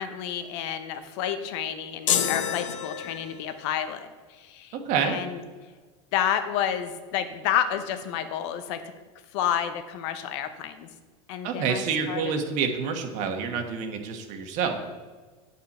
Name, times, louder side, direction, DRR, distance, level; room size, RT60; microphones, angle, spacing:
voice 1, 0.0-5.4 6.1-8.8 9.3-10.9 11.3-12.3, left 9 dB, 65° left, 9 dB, 1.0 m, -30 dB
sound 1, 2.1-3.6, left 9 dB, 90° left, 0.8 m, -28 dB
voice 2, 4.8-5.2 11.4-14.8, right 6 dB, 50° right, 4 dB, 1.4 m, -27 dB
8.3 x 7.3 x 4.3 m, 1.4 s
supercardioid pair, 120°, 16 cm